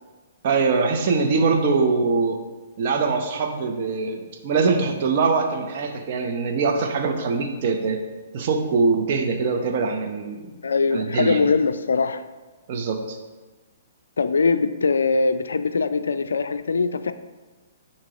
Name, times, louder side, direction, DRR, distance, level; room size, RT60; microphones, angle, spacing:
voice 1, 0.4-2.4 2.8-8.0 8.3-10.5 10.9-11.4 12.7-13.2, right 4 dB, 45° right, 4 dB, 0.8 m, -23 dB
voice 2, 10.6-12.2 14.2-17.1, left 4 dB, 70° left, 11 dB, 0.3 m, -22 dB
7.4 x 2.9 x 5.0 m, 1.2 s
figure-of-eight pair, 120°, 0 cm